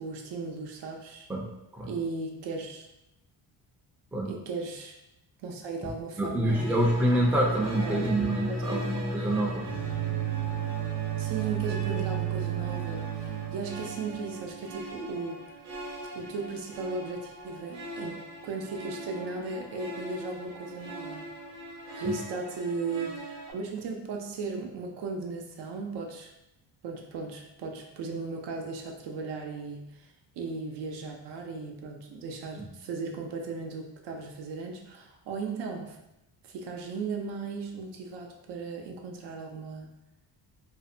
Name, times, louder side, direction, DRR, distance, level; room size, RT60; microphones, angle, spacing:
voice 1, 0.0-1.3 1.8-2.9 4.2-5.0 5.4-6.8 7.8-8.9 11.2-15.5 16.1-21.3 21.9-26.3 26.8-36.0 36.4-39.9, right 4 dB, 80° right, 2 dB, 0.6 m, -36 dB
voice 2, 6.2-9.7 22.0-22.2 32.6-32.7, right 1 dB, 5° right, -2 dB, 0.3 m, -27 dB
sound 1, 6.5-23.5, right 4 dB, 40° right, 0.7 m, -35 dB
2.6 x 2.1 x 2.6 m, 0.88 s
cardioid pair, 105°, 41 cm